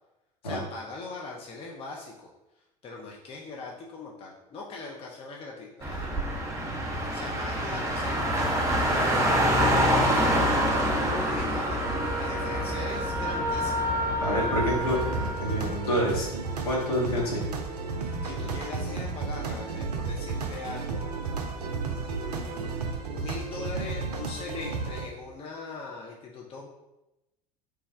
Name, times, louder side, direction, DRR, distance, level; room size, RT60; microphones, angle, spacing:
voice 1, 0.4-2.3 2.8-6.2 7.0-8.4 8.9-13.9 18.2-26.7, left 3 dB, 30° left, -2 dB, 0.6 m, -41 dB
Car, 5.8-15.3, equal, 15° right, 0.8 m, -26 dB
Wind instrument woodwind instrument, 11.8-16.0, equal, 45° right, 0.7 m, -32 dB
voice 2, 14.2-15.0 15.4-16.3 16.6-17.4, equal, 70° left, -4 dB, 1.4 m, -27 dB
sound 1, 14.8-25.1, right 4 dB, 80° right, 0.5 m, -33 dB
3.3 x 2.2 x 4.3 m, 0.97 s
figure-of-eight pair, 75°, 20 cm